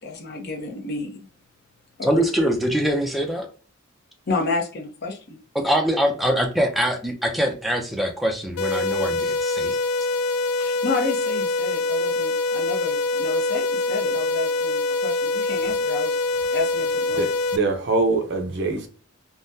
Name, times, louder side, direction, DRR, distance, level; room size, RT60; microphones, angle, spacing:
voice 1, 0.0-1.3 2.0-2.1 4.3-5.4 10.6-16.2 16.5-17.3, left 3 dB, 50° left, 0.7 m, -30 dB
voice 2, 2.0-3.5 5.5-9.8, equal, ahead, 0.4 m, -23 dB
sound 1, 8.6-17.6, left 3 dB, 85° left, 0.3 m, -24 dB
voice 3, 17.1-18.9, right 3 dB, 50° right, 0.6 m, -23 dB
3.5 x 2.1 x 2.6 m
head